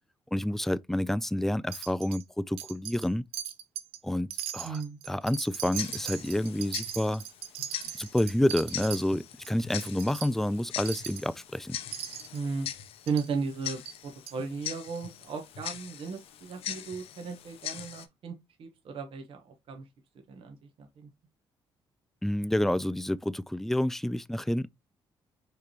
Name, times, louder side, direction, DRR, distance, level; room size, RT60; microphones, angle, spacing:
voice 1, 0.3-3.2 4.0-4.8 5.1-7.2 7.9-11.8 22.2-24.7, left 1 dB, 5° left, 0.3 m, -29 dB
Wind chime, 1.7-2.2 2.6-3.1 3.3-4.0 4.3-9.0 9.4-9.5 9.8-10.3 10.9-11.3 11.9-12.4 13.1-13.3 13.9-14.0 14.3-14.4, right 11 dB, 90° right, 0.6 m, -39 dB
voice 2, 4.6-5.0 12.3-19.9 20.3-21.1, right 5 dB, 65° right, 1.2 m, -36 dB
Tick-tock, 5.7-18.1, left 10 dB, 75° left, 0.7 m, -41 dB
4.9 x 3.3 x 2.9 m
supercardioid pair, 70°, 10 cm